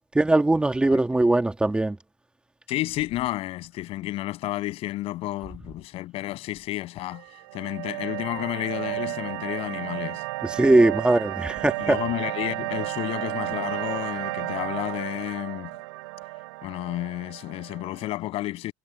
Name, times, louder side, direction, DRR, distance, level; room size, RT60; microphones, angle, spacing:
voice 1, 0.1-2.0 10.4-12.0, right 2 dB, 10° right, 1.9 m, -20 dB
voice 2, 2.7-7.2 7.5-10.2 11.8-15.7 16.6-18.7, left 16 dB, 55° left, 6.7 m, -31 dB
sound 1, 7.1-18.1, right 24 dB, 90° right, 6.3 m, -33 dB
supercardioid pair, 120°, 11 cm